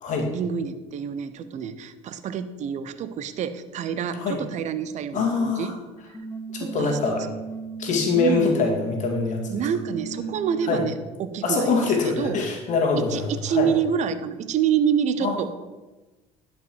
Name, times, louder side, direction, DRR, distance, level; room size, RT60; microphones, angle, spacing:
voice 1, 0.3-5.7 6.6-7.0 8.1-8.6 9.5-10.9 11.2-12.4 13.1-15.5, right 8 dB, 50° right, 12 dB, 0.7 m, -27 dB
voice 2, 5.1-5.7 6.5-7.2 7.8-9.5 10.7-10.8 11.4-13.7 15.2-15.4, left 4 dB, 55° left, 2 dB, 2.2 m, -24 dB
sound 1, 6.1-11.1, right 5 dB, 15° left, 1.5 m, -36 dB
11.0 x 5.5 x 4.6 m, 1.1 s
hypercardioid pair, 65°, 15 cm